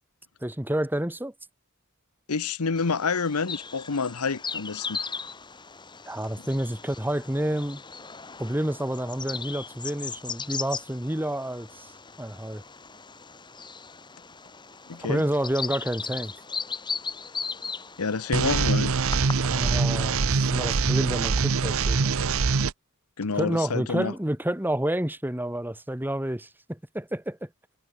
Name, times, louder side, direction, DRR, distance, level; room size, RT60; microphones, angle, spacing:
voice 1, 0.4-1.3 6.1-7.8 8.4-11.9 12.2-12.6 15.0-16.3 19.4-22.2 23.3-27.5, right 1 dB, 10° right, 1.8 m, -29 dB
voice 2, 2.3-5.0 14.9-15.2 18.0-18.9 23.2-24.1, left 4 dB, 85° left, 0.9 m, -28 dB
Bird vocalization bird call bird song, 2.8-19.8, left 5 dB, 20° left, 2.2 m, -38 dB
sound 1, 18.3-22.7, right 4 dB, 65° right, 0.8 m, -24 dB
head